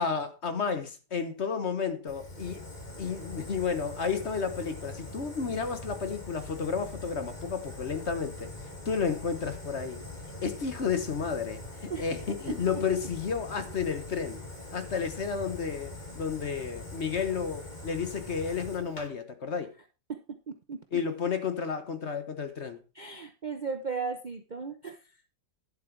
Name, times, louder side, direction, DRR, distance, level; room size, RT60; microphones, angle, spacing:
voice 1, 0.0-2.6 3.0-8.5 8.8-10.0 10.4-14.4 14.7-19.7 20.9-22.8, left 6 dB, 45° left, 1.1 m, -32 dB
Fire, 2.1-19.1, left 2 dB, 25° left, 2.5 m, -43 dB
voice 2, 20.1-21.0 22.9-25.0, right 5 dB, 90° right, 0.4 m, -36 dB
10.5 x 7.5 x 4.5 m
omnidirectional pair, 2.1 m